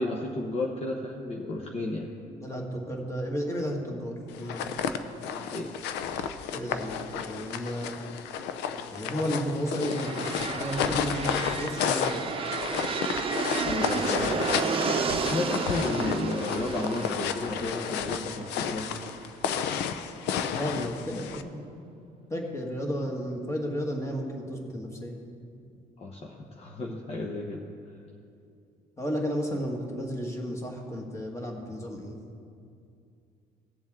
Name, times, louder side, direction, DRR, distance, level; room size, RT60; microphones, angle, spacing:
voice 1, 0.0-2.1 5.2-5.7 13.6-14.4 15.2-19.1 26.0-27.6, left 2 dB, 35° left, -1 dB, 1.0 m, -33 dB
voice 2, 2.4-4.8 6.5-8.0 8.9-12.3 20.5-21.7 22.3-25.2 29.0-32.2, equal, 15° left, 0 dB, 1.8 m, -33 dB
sound 1, 4.3-21.4, left 8 dB, 85° left, 0.6 m, -32 dB
sound 2, 9.7-19.5, right 5 dB, 35° right, 0.8 m, -32 dB
18.0 x 7.1 x 3.7 m, 2.5 s
cardioid pair, 110°, 17 cm